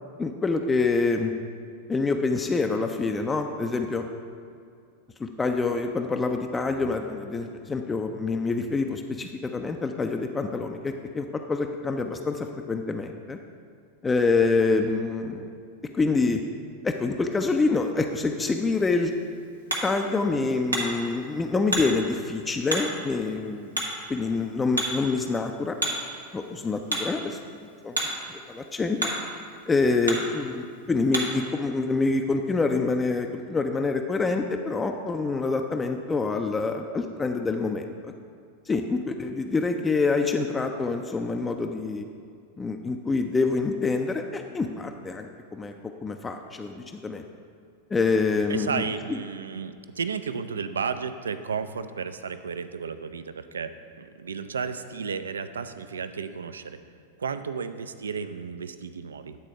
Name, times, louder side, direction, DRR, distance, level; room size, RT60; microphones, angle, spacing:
voice 1, 0.2-1.3 1.9-4.0 5.2-13.4 14.0-15.5 15.9-16.4 16.8-19.1 19.8-23.8 24.1-25.8 26.3-28.0 28.3-29.1 29.7-38.1 38.7-42.0 42.6-45.7 46.0-47.2 47.9-48.8 49.1-49.2, left 3 dB, 15° left, 4 dB, 0.3 m, -26 dB
Hammer, 18.8-31.5, right 1 dB, 85° right, 1.0 m, -34 dB
voice 2, 48.5-56.8 57.2-59.4, right 6 dB, 70° right, 11 dB, 0.3 m, -33 dB
9.2 x 4.0 x 4.9 m, 2.3 s
figure-of-eight pair, 90°, 0 cm